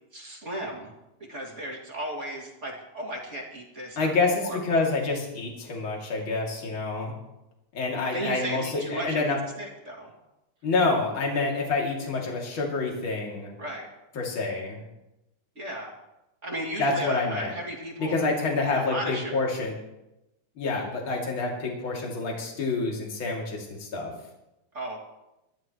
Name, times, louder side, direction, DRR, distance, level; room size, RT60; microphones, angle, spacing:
voice 1, 0.1-0.9 1.3-4.1 4.4-4.6 8.0-10.1 13.6-13.9 15.6-16.0 16.4-18.2 18.6-19.5 24.7-25.0, right 1 dB, 25° right, -1 dB, 2.3 m, -35 dB
voice 2, 4.0-7.1 7.7-9.4 10.6-13.5 14.1-14.8 16.8-17.5 18.0-19.7 20.6-24.1, left 3 dB, 40° left, -1 dB, 3.3 m, -27 dB
26.0 x 13.0 x 3.1 m, 0.93 s
omnidirectional pair, 3.7 m